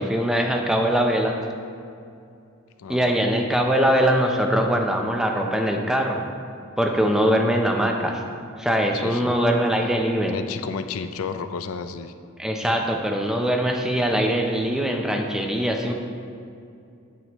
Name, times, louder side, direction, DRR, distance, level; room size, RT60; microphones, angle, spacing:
voice 1, 0.0-1.4 2.9-6.2 6.8-8.2 8.6-10.3 12.4-15.9, equal, 5° right, 2 dB, 0.6 m, -22 dB
voice 2, 2.8-3.2 8.9-9.4 10.3-12.1, left 5 dB, 75° left, 9 dB, 0.4 m, -32 dB
9.2 x 8.0 x 3.0 m, 2.5 s
head